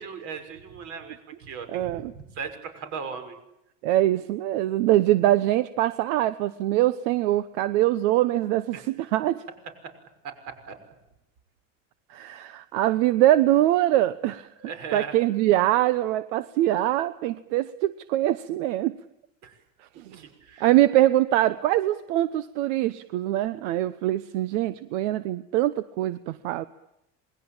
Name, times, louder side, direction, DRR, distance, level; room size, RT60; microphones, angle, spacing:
voice 1, 0.0-3.4 8.7-8.8 9.8-9.9 10.2-10.8 14.6-15.2 19.4-19.6 20.0-20.7, right 5 dB, 50° right, 8 dB, 6.1 m, -38 dB
voice 2, 1.7-2.1 3.8-9.4 12.1-14.5 14.9-18.9 20.0-20.2 20.6-26.6, right 14 dB, 80° right, 14 dB, 1.1 m, -23 dB
27.5 x 21.5 x 8.9 m, 0.84 s
cardioid pair, 160°, 36 cm